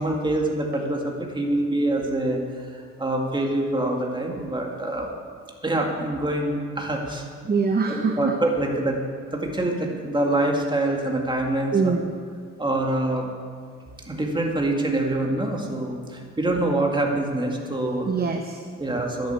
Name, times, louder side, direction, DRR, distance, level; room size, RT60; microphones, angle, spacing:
voice 1, 0.0-5.2 5.6-7.3 7.9-9.0 9.3-11.9 12.6-13.3 14.1-18.1 18.8-19.3, right 1 dB, 15° right, 0 dB, 2.1 m, -25 dB
voice 2, 7.5-8.3 11.7-12.1 18.1-19.0, right 5 dB, 30° right, 5 dB, 0.8 m, -24 dB
10.5 x 7.9 x 8.2 m, 2.1 s
cardioid pair, 90°, 30 cm